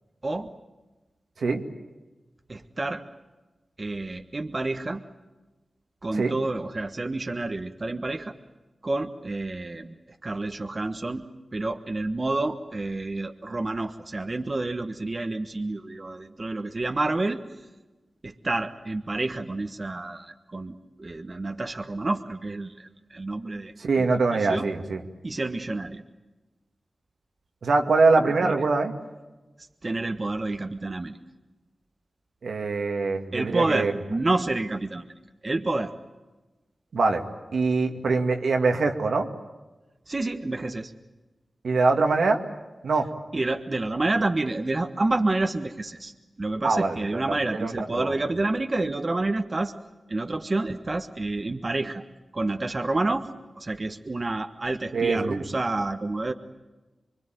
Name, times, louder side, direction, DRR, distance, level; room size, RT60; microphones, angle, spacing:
voice 1, 2.5-3.0 3.8-5.0 6.0-8.3 8.8-9.9 10.2-11.2 11.5-17.4 18.2-24.7 25.2-26.0 28.4-28.5 29.8-31.2 33.3-35.0 35.4-35.9 40.1-40.9 43.3-46.1 46.4-49.8 50.1-52.0 52.3-53.3 53.6-56.3, right 2 dB, 40° right, 6 dB, 1.4 m, -29 dB
voice 2, 23.8-25.0 27.6-28.9 32.4-33.9 36.9-37.2 37.5-39.3 41.6-42.4 42.8-43.1 46.6-47.2 47.6-48.1 54.9-55.4, right 3 dB, 85° right, 3 dB, 2.2 m, -23 dB
25.0 x 23.5 x 9.2 m, 1.2 s
wide cardioid pair, 65°, 0 cm